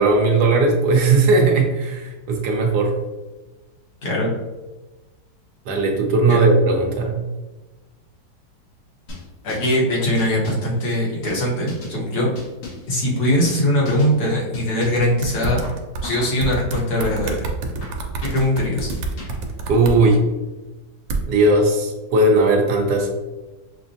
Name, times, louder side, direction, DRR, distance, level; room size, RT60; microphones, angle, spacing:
voice 1, 0.0-2.9 5.7-7.2 19.7-20.2 21.3-23.1, right 2 dB, 65° right, 1 dB, 1.2 m, -17 dB
voice 2, 4.0-4.3 6.2-6.4 9.4-12.3 12.9-15.6 16.0-17.5 18.2-18.9, left 1 dB, 60° left, -4 dB, 1.5 m, -21 dB
sound 1, 9.1-9.8 10.2-10.7 11.3-12.0 12.3-12.9 13.4-13.6 13.9-14.2 14.5-15.1 15.6-16.3 16.7-17.3 17.8-18.5 18.9-19.5, left 3 dB, 85° left, 1.7 m, -37 dB
sound 2, 15.0-16.0 16.4-20.0 21.1-21.2, right 4 dB, 85° right, 1.3 m, -27 dB
6.0 x 2.1 x 2.6 m, 1.1 s
omnidirectional pair, 2.0 m